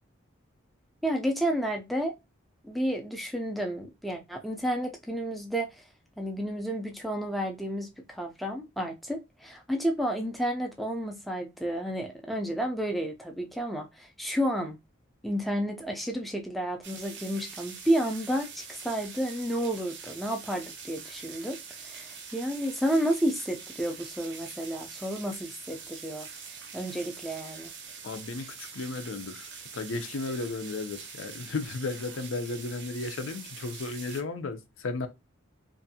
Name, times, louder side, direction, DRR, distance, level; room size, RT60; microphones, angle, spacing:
voice 1, 1.0-2.1 2.6-5.8 6.2-14.8 15.2-21.6 21.8-26.3 26.7-27.7, equal, ahead, 0.4 m, -31 dB
sound 1, 16.8-34.2, right 6 dB, 60° right, 0.6 m, -44 dB
voice 2, 28.0-35.1, left 3 dB, 75° left, 0.5 m, -34 dB
2.6 x 2.3 x 2.7 m
head